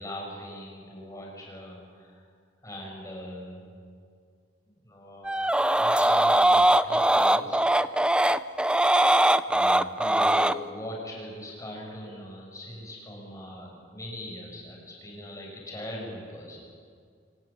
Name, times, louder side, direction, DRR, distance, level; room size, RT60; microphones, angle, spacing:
voice 1, 0.0-2.3 2.6-3.8 4.8-7.6 9.5-16.6, left 1 dB, 20° left, -1 dB, 7.2 m, -41 dB
sound 1, 5.2-10.5, right 1 dB, 5° right, 0.5 m, -21 dB
26.5 x 17.0 x 8.8 m, 2.1 s
head